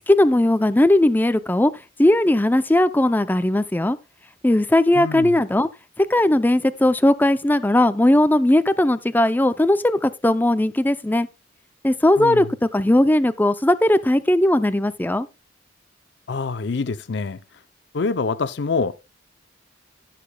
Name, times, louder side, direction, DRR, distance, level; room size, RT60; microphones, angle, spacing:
voice 1, 0.1-1.7 2.0-4.0 4.4-5.7 6.0-11.3 11.8-15.3, left 1 dB, 10° left, 0.4 m, -18 dB
voice 2, 4.9-5.4 12.2-12.5 16.3-17.4 17.9-18.9, left 4 dB, 60° left, 0.5 m, -25 dB
15.0 x 6.7 x 2.2 m
head